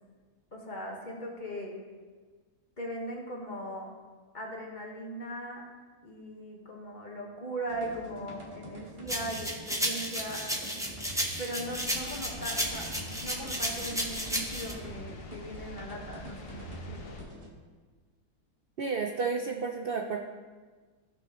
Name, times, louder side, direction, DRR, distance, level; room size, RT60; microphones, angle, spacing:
voice 1, 0.5-1.8 2.8-3.9 4.3-5.6 6.0-10.5 11.4-12.8 13.2-17.2, right 1 dB, 30° left, -2 dB, 1.4 m, -39 dB
sound 1, 7.7-17.5, right 1 dB, 20° right, 1.2 m, -46 dB
sound 2, 9.1-14.7, equal, 5° right, 0.6 m, -33 dB
sound 3, 11.6-17.2, left 2 dB, 60° left, 1.3 m, -46 dB
voice 2, 18.8-20.2, right 5 dB, 65° right, 2 dB, 0.5 m, -31 dB
16.0 x 6.1 x 3.0 m, 1.4 s
omnidirectional pair, 1.7 m